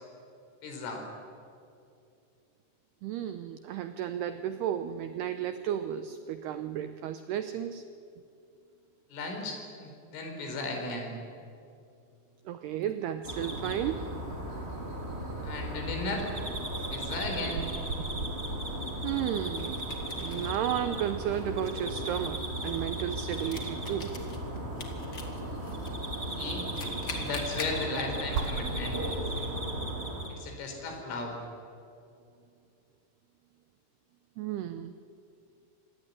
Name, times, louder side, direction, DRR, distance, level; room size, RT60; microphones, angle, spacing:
voice 1, 0.6-1.0 9.1-11.2 15.4-16.3 16.9-17.6 26.4-26.7 27.1-29.0 29.4-29.5 30.3-31.4, left 2 dB, 75° left, 3 dB, 6.9 m, -36 dB
voice 2, 3.0-7.8 12.5-14.2 19.0-19.9 20.1-24.2 34.4-35.0, right 10 dB, 90° right, 10 dB, 2.3 m, -33 dB
sound 1, 12.8-13.5 16.0-16.1 16.8-16.9 19.6-20.6 21.1-25.9 26.4-27.8, left 4 dB, 35° left, 1.7 m, -45 dB
sound 2, 13.2-30.3, right 1 dB, 15° right, 3.1 m, -36 dB
sound 3, 14.1-29.4, right 5 dB, 65° right, 3.6 m, -43 dB
27.0 x 20.5 x 9.9 m, 2.5 s
omnidirectional pair, 5.8 m